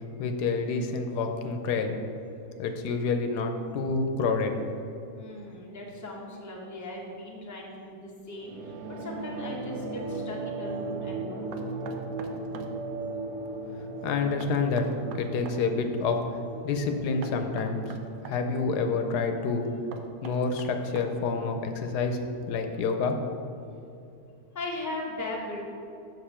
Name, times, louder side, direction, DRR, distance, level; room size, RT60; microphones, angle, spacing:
voice 1, 0.2-2.0 2.6-4.6 14.0-16.2 16.6-17.8 18.2-19.6 20.2-22.2 22.5-23.2, left 4 dB, 90° left, 6 dB, 1.2 m, -28 dB
voice 2, 5.1-11.7 24.5-25.6, left 2 dB, 15° left, -2 dB, 0.8 m, -38 dB
sound 1, 8.4-23.3, right 3 dB, 85° right, 1.3 m, -38 dB
Knock, 11.5-12.7 14.4-15.6 17.2-18.4 19.9-21.3, right 5 dB, 70° right, 1.0 m, -43 dB
6.7 x 6.5 x 4.3 m, 2.7 s
omnidirectional pair, 1.7 m